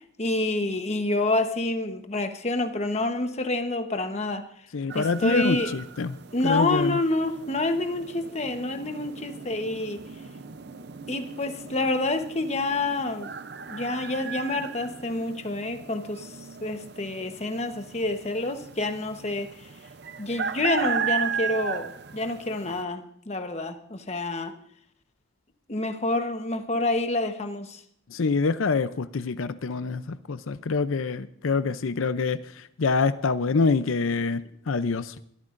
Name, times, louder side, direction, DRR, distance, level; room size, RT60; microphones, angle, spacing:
voice 1, 0.2-4.4 4.9-5.8 6.3-10.0 11.1-13.3 13.7-16.3 16.6-19.5 20.2-24.5 25.7-27.8, left 2 dB, 35° left, 7 dB, 1.1 m, -28 dB
voice 2, 4.7-6.1 6.4-7.0 28.1-32.4 32.8-35.1, left 4 dB, 80° left, 12 dB, 0.6 m, -26 dB
sound 1, 4.9-22.8, right 6 dB, 55° right, 0.6 m, -36 dB
24.0 x 13.5 x 2.6 m, 0.67 s
head